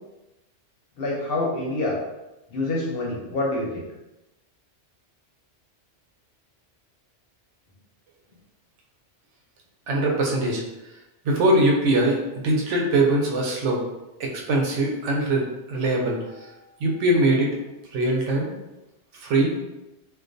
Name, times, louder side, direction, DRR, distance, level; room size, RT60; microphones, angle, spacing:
voice 1, 1.0-2.0 2.5-3.9, left 2 dB, 65° left, -2 dB, 0.7 m, -26 dB
voice 2, 9.9-10.6 11.2-13.8 14.2-16.2 16.8-17.6 17.9-18.5 19.2-19.5, right 1 dB, 85° right, -1 dB, 0.9 m, -22 dB
2.3 x 2.3 x 2.5 m, 0.97 s
omnidirectional pair, 1.2 m